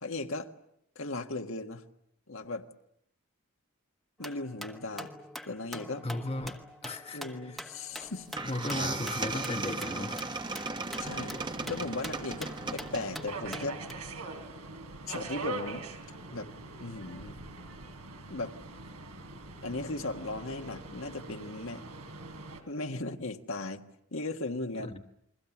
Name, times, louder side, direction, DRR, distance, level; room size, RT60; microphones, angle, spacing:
voice 1, 0.0-0.5 0.9-1.8 2.3-2.6 4.2-5.1 5.5-6.1 7.1-8.3 11.0-13.8 15.1-15.9 16.3-16.5 16.8-17.4 18.3-18.5 19.6-21.8 22.7-23.8 24.1-25.0, left 2 dB, 65° left, 6 dB, 1.6 m, -37 dB
sound 1, 4.2-13.9, equal, ahead, 1.3 m, -45 dB
voice 2, 6.0-7.6 8.4-10.4 24.8-25.0, left 1 dB, 25° left, 6 dB, 1.0 m, -36 dB
sound 2, 8.0-8.1 8.4-13.3, right 3 dB, 20° right, 1.2 m, -36 dB
Subway metro underground, 11.0-22.6, right 2 dB, 85° right, 3.8 m, -43 dB
29.0 x 22.5 x 7.3 m, 0.74 s
head